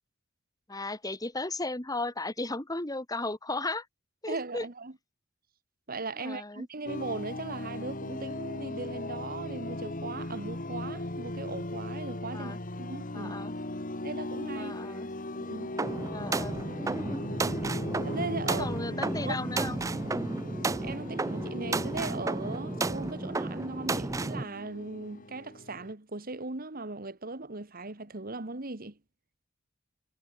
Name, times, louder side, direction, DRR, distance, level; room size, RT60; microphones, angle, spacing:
voice 1, 0.7-3.9 4.2-4.6 6.2-6.7 12.3-12.6 13.1-13.5 14.5-15.1 16.1-17.6 18.5-19.8 20.1-20.4, left 2 dB, 20° left, 2.2 m, -36 dB
voice 2, 4.3-4.9 5.9-13.4 14.0-14.8 15.4-15.7 17.6-18.7 19.0-19.4 20.8-29.0, right 3 dB, 45° right, 1.8 m, -38 dB
sound 1, 6.9-25.9, left 1 dB, 40° left, 2.4 m, -38 dB
sound 2, 15.8-24.4, right 3 dB, 15° right, 0.4 m, -33 dB
head